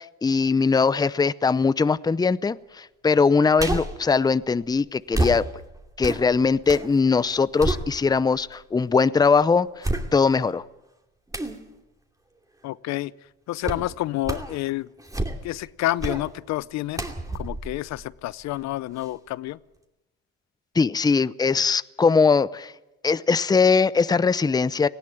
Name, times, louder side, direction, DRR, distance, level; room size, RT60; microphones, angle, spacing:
voice 1, 0.0-5.5 6.0-9.8 10.1-10.6 20.8-22.7 23.0-24.9, left 5 dB, 15° left, 18 dB, 0.6 m, -21 dB
sound 1, 3.6-4.0 5.1-6.9 7.3-8.4 8.9-9.0 9.8-10.5 11.3-11.6 13.6-13.9 14.2-14.6 15.0-15.6 16.0-16.3 16.9-18.6 19.0-19.1, right 2 dB, 10° right, 2.6 m, -29 dB
voice 2, 12.6-13.1 13.5-14.9 15.4-17.1 17.3-19.6, left 16 dB, 65° left, 19 dB, 0.6 m, -29 dB
18.5 x 16.0 x 8.9 m, 0.97 s
supercardioid pair, 80°, 29 cm